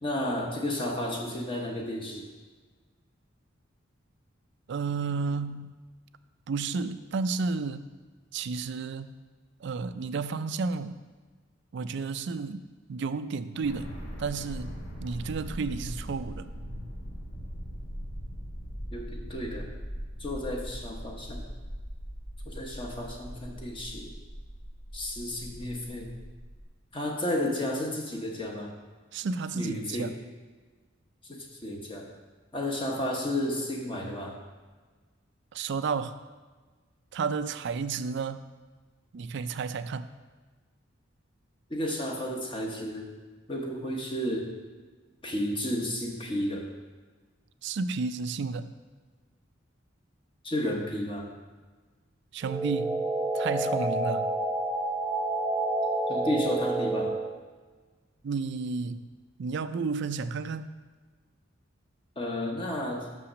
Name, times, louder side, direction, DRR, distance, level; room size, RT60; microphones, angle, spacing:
voice 1, 0.0-2.3 18.9-19.7 20.2-21.5 22.5-24.1 24.9-26.1 26.9-28.7 29.5-30.1 31.2-32.1 32.5-34.4 41.7-43.1 43.5-44.5 45.2-46.7 50.4-51.3 56.1-57.1 62.2-63.1, left 1 dB, 25° left, 0 dB, 0.9 m, -32 dB
voice 2, 4.7-5.7 6.5-7.9 8.3-9.2 9.6-11.0 11.7-12.6 12.9-13.9 14.2-16.5 29.1-30.1 35.5-36.2 37.1-38.4 39.1-40.1 47.6-48.7 52.3-53.1 53.3-54.3 58.2-59.1 59.4-60.7, right 4 dB, 60° right, 12 dB, 0.4 m, -32 dB
sound 1, 13.6-26.6, equal, 65° left, 1.4 m, -40 dB
sound 2, 52.4-57.4, right 2 dB, 5° right, 0.7 m, -29 dB
6.2 x 5.7 x 6.2 m, 1.4 s
head